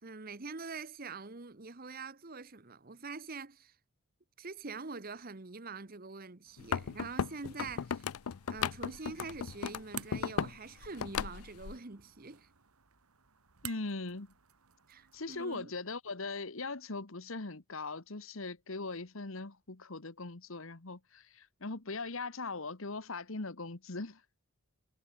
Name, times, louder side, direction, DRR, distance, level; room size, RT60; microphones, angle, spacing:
voice 1, 0.0-3.8 4.4-8.1 8.5-12.5 14.9-15.7, right 4 dB, 40° right, 1.1 m, -45 dB
sound 1, 6.4-15.6, right 10 dB, 90° right, 2.0 m, -53 dB
sound 2, 6.6-10.6 10.8-11.7, left 7 dB, 85° left, 0.5 m, -36 dB
voice 2, 13.6-14.3 15.1-24.2, left 3 dB, 65° left, 1.5 m, -40 dB
head